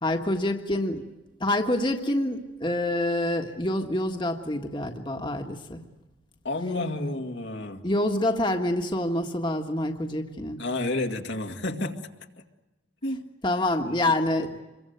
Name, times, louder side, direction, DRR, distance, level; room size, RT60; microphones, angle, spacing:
voice 1, 0.0-1.0 1.4-5.8 7.8-10.6 13.4-14.5, left 1 dB, 25° left, 4 dB, 1.6 m, -27 dB
voice 2, 6.4-7.8 10.6-12.0 12.4-12.5 13.0-13.2 13.8-14.1, left 2 dB, 75° left, 4 dB, 2.2 m, -30 dB
27.0 x 23.0 x 8.0 m, 1.1 s
head